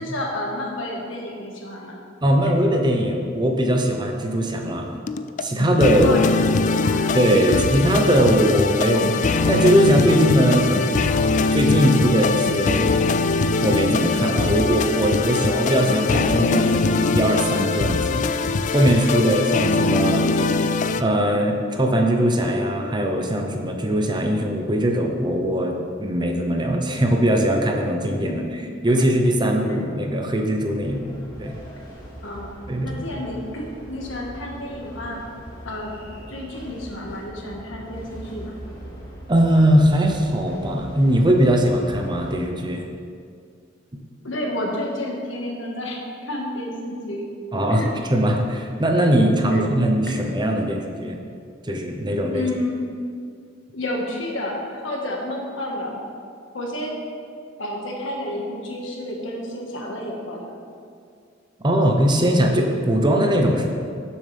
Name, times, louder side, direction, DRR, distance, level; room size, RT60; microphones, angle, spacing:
voice 1, 0.0-2.0 6.0-7.1 7.5-7.7 19.2-19.6 20.2-20.4 28.3-28.5 28.9-29.0 29.6-29.9 32.2-32.5 32.8-35.2 35.7-35.9 36.3-38.6 44.2-47.3 47.7-47.9 49.4-49.7 50.1-50.2 52.3-52.8 53.7-54.6 54.8-56.0 56.5-57.0 57.6-60.5, left 1 dB, 75° left, -1 dB, 1.6 m, -30 dB
voice 2, 2.2-4.9 5.4-6.2 7.1-11.3 11.5-12.9 13.6-18.3 18.7-20.2 21.0-28.4 28.8-31.6 32.7-32.9 39.3-42.8 47.5-47.8 48.1-51.2 51.6-52.5 61.6-63.7, equal, 25° right, 3 dB, 0.8 m, -20 dB
sound 1, 5.1-21.0, left 3 dB, 40° left, 0.3 m, -22 dB
sound 2, 30.8-42.4, equal, 20° left, 2.4 m, -40 dB
12.0 x 7.2 x 3.4 m, 2.3 s
head